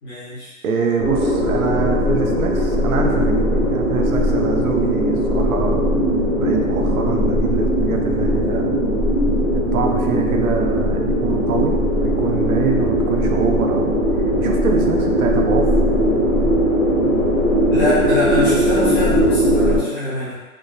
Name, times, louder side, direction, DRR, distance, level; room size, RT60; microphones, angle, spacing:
voice 1, 0.0-0.5 17.7-20.3, left 1 dB, 15° left, -12 dB, 0.8 m, -23 dB
voice 2, 0.6-6.0 6.3-8.8 9.5-14.0 14.4-15.8, right 5 dB, 75° right, 2 dB, 0.6 m, -25 dB
sound 1, 1.0-19.8, equal, 25° right, 0.8 m, -19 dB
3.6 x 2.6 x 2.3 m, 1.2 s
hypercardioid pair, 175°, 44 cm